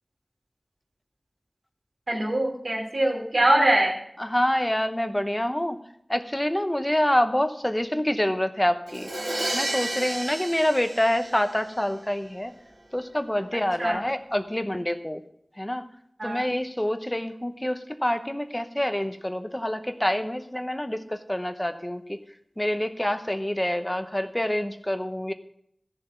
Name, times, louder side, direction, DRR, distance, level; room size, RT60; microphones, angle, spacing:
voice 1, 2.1-3.9 13.8-14.0 16.2-16.4, right 1 dB, 80° right, -1 dB, 3.1 m, -23 dB
voice 2, 4.2-5.8 6.1-9.1 9.5-12.5 12.9-15.2 15.6-15.8 16.2-22.2 22.6-25.3, left 1 dB, 20° left, 8 dB, 0.8 m, -26 dB
Crash cymbal, 8.9-11.8, right 1 dB, 60° right, 1.6 m, -32 dB
14.0 x 7.0 x 5.5 m, 0.72 s
wide cardioid pair, 45°, 0 cm